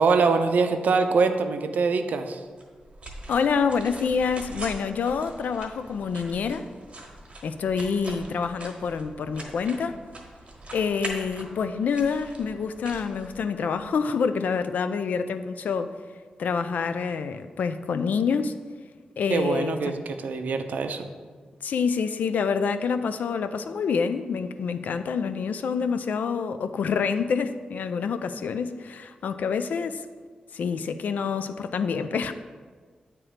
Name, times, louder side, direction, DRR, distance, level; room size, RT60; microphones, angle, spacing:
voice 1, 0.0-2.4 19.3-21.1, right 4 dB, 80° right, 7 dB, 0.5 m, -23 dB
sound 1, 2.6-13.9, right 1 dB, 45° right, 1.2 m, -42 dB
voice 2, 3.3-6.6 7.4-10.0 10.7-15.9 16.4-18.5 19.2-20.0 21.6-30.0 30.5-32.3, left 5 dB, 85° left, 10 dB, 0.3 m, -27 dB
8.6 x 3.0 x 4.8 m, 1.5 s
wide cardioid pair, 115°, 3 cm